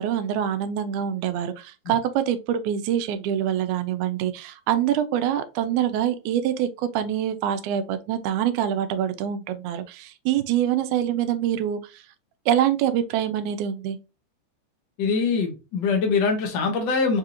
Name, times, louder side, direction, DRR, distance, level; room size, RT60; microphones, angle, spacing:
voice 1, 0.0-12.0 12.5-14.0, right 10 dB, 90° right, 2.0 m, -25 dB
voice 2, 15.0-17.2, left 4 dB, 90° left, 0.9 m, -23 dB
5.4 x 2.5 x 2.8 m
omnidirectional pair, 3.4 m